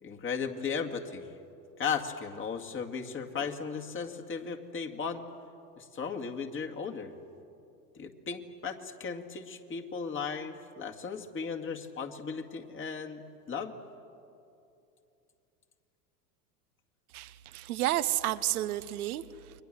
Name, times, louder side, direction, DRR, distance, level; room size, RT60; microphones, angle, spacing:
voice 1, 0.0-1.3 1.8-5.2 5.8-7.1 7.9-13.7, left 6 dB, 25° left, 3 dB, 2.3 m, -36 dB
voice 2, 17.1-19.5, right 14 dB, 65° right, 12 dB, 1.1 m, -31 dB
30.0 x 23.0 x 7.7 m, 2.6 s
hypercardioid pair, 90°, 47 cm